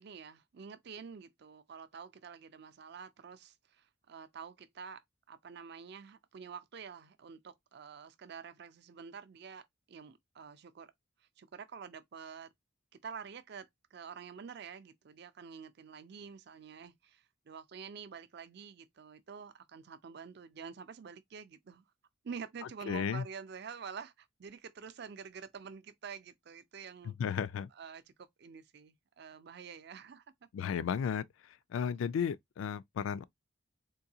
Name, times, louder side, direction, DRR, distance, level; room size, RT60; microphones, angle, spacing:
voice 1, 0.0-5.0 5.3-10.9 11.4-12.5 13.0-21.8 22.2-27.2 27.7-30.5, right 6 dB, 55° right, 0.4 m, -48 dB
voice 2, 22.9-23.2 27.0-27.7 30.5-31.3 31.7-33.2, left 7 dB, 75° left, 0.3 m, -34 dB
3.8 x 2.6 x 2.7 m
head